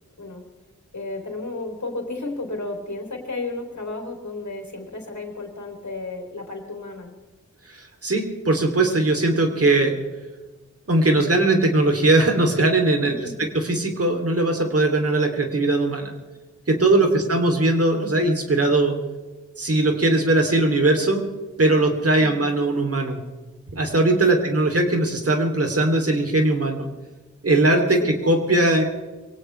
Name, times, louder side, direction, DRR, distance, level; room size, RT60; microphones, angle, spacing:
voice 1, 0.9-7.1 13.0-13.6 16.9-17.0 22.2-22.5 24.3-24.6 28.0-28.2, left 2 dB, 65° left, 2 dB, 3.7 m, -33 dB
voice 2, 7.7-10.0 10.9-13.3 13.5-16.1 16.7-19.0 19.6-21.2 21.6-23.2 23.7-26.9 27.4-28.8, right 2 dB, 50° right, 3 dB, 3.1 m, -20 dB
23.5 x 17.5 x 3.4 m, 1.2 s
wide cardioid pair, 65°, 31 cm